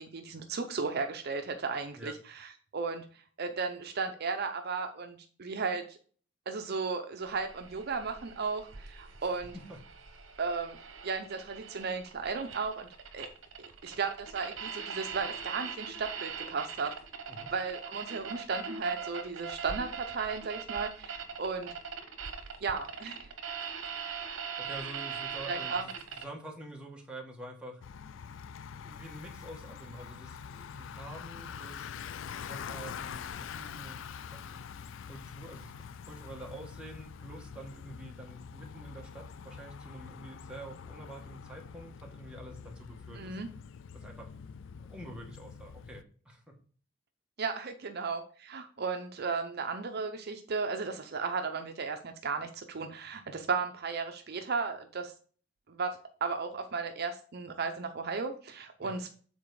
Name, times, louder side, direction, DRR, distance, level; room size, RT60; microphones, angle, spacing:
voice 1, 0.0-3.0 3.4-6.0 6.5-9.5 10.4-10.8 11.0-12.9 13.1-13.3 13.8-16.9 17.5-21.7 22.6-23.3 25.5-25.9 43.2-43.5 47.4-55.1 55.7-59.1, right 4 dB, 55° right, 6 dB, 0.6 m, -35 dB
sound 1, 7.2-26.2, right 6 dB, 75° right, 1.0 m, -41 dB
voice 2, 9.2-9.8 17.3-17.5 24.3-27.8 28.8-31.9 32.4-34.7 35.0-43.4 43.9-46.4 58.8-59.0, right 1 dB, 5° right, -1 dB, 1.5 m, -47 dB
Bicycle, 27.8-46.0, left 7 dB, 65° left, 0.4 m, -45 dB
7.3 x 4.1 x 4.7 m, 0.43 s
head